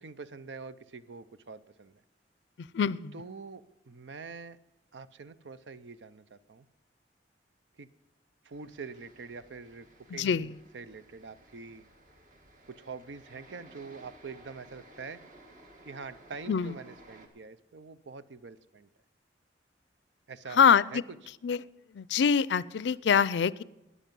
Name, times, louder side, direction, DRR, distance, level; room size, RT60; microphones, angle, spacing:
voice 1, 0.0-2.0 3.1-4.6 4.9-6.7 7.8-7.9 8.4-11.8 12.7-15.2 15.8-18.9 20.3-20.6 20.9-21.0, right 4 dB, 90° right, 14 dB, 0.7 m, -45 dB
voice 2, 2.6-3.2 10.1-10.6 16.5-16.7 20.5-21.0 21.4-21.6 21.9-23.6, left 7 dB, 75° left, 20 dB, 0.4 m, -25 dB
sound 1, 8.5-17.3, right 1 dB, 45° right, 1.7 m, -56 dB
13.5 x 9.8 x 5.4 m, 1.0 s
head